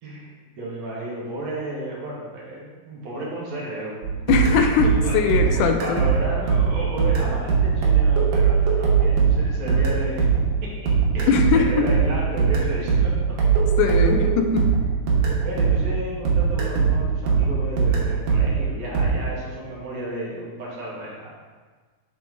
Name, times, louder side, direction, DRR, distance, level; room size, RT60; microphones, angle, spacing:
voice 1, 0.6-4.2 4.6-5.1 5.4-10.3 10.6-10.7 11.1-13.6 15.4-21.4, right 1 dB, 60° right, -5 dB, 2.5 m, -33 dB
sound 1, 4.0-16.0 16.3-19.1, right 6 dB, 85° right, 2.7 m, -20 dB
voice 2, 4.3-6.0 11.3-11.9 13.8-14.8, left 5 dB, 85° left, 5 dB, 2.1 m, -21 dB
7.7 x 4.3 x 3.7 m, 1.4 s
omnidirectional pair, 3.6 m